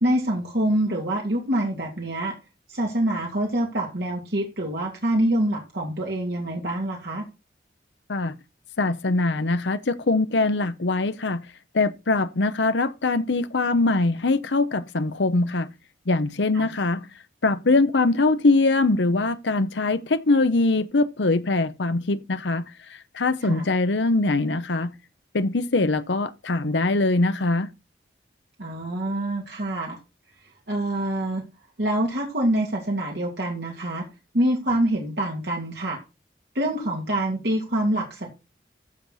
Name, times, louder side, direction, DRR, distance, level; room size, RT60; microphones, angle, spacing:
voice 1, 0.0-2.4 2.7-7.2 16.5-16.7 23.4-23.7 28.6-30.0 30.7-31.4 31.8-34.1 34.3-36.0 36.5-38.4, right 1 dB, 65° right, 2.7 m, -25 dB
voice 2, 8.8-11.4 11.7-15.7 16.1-17.1 17.4-24.9 25.3-27.7, left 3 dB, 80° left, 0.8 m, -22 dB
14.5 x 6.5 x 4.2 m
head